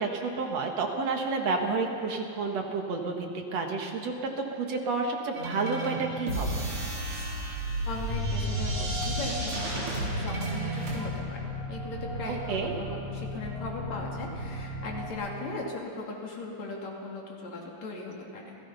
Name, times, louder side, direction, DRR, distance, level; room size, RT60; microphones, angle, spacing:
voice 1, 0.0-4.1 4.5-6.7 12.3-12.7, right 4 dB, 65° right, 3 dB, 2.7 m, -30 dB
sound 1, 5.3-11.0, right 1 dB, 45° right, 4.5 m, -32 dB
voice 2, 7.9-11.4 11.7-18.6, left 2 dB, 65° left, -2 dB, 3.9 m, -38 dB
sound 2, 8.5-15.1, equal, 30° right, 3.4 m, -37 dB
29.0 x 17.5 x 5.6 m, 2.5 s
omnidirectional pair, 3.4 m